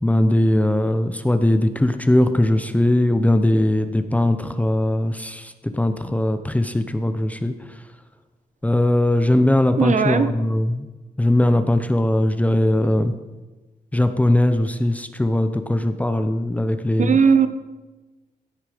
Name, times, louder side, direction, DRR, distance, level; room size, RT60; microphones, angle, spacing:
voice 1, 0.0-7.5 8.6-10.9 11.2-13.1 13.9-17.2, left 1 dB, 10° left, 9 dB, 0.7 m, -20 dB
voice 2, 9.8-10.3 17.0-17.5, right 6 dB, 50° right, 11 dB, 0.8 m, -17 dB
16.0 x 8.7 x 5.0 m, 1.2 s
wide cardioid pair, 155°, 16 cm